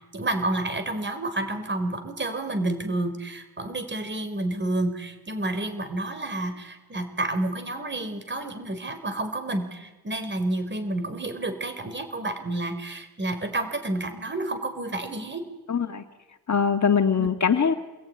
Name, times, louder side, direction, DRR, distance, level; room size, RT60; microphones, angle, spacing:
voice 1, 0.1-15.4 17.2-17.3, right 2 dB, 30° right, 8 dB, 4.7 m, -30 dB
voice 2, 15.7-16.0 16.5-17.7, left 6 dB, 45° left, 6 dB, 1.9 m, -22 dB
28.5 x 21.0 x 9.9 m, 1.1 s
wide cardioid pair, 130°, 38 cm